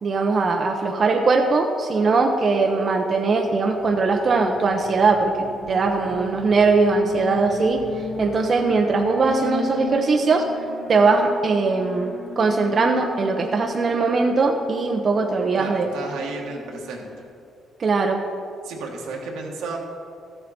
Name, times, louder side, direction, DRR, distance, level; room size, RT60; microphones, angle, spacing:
voice 1, 0.0-10.5 10.9-15.9 17.8-18.2, right 4 dB, 45° right, 2 dB, 0.8 m, -20 dB
Alarm, 3.8-17.2, left 4 dB, 45° left, 1.4 m, -36 dB
voice 2, 15.6-17.1 18.6-19.8, right 3 dB, 90° right, -1 dB, 1.8 m, -32 dB
14.0 x 7.8 x 4.3 m, 2.6 s
cardioid pair, 90°, 0 cm